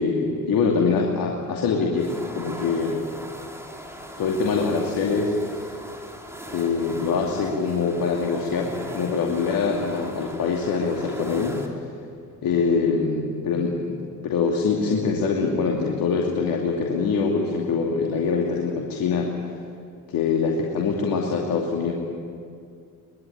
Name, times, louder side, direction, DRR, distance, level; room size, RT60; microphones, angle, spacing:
voice 1, 0.0-3.0 4.2-5.7 6.5-11.6 12.4-14.0 14.2-19.3 20.1-21.9, left 5 dB, 50° left, 0 dB, 2.8 m, -24 dB
sound 1, 1.9-11.7, equal, 5° right, 4.2 m, -39 dB
23.5 x 21.0 x 9.1 m, 2.3 s
figure-of-eight pair, 50°, 43 cm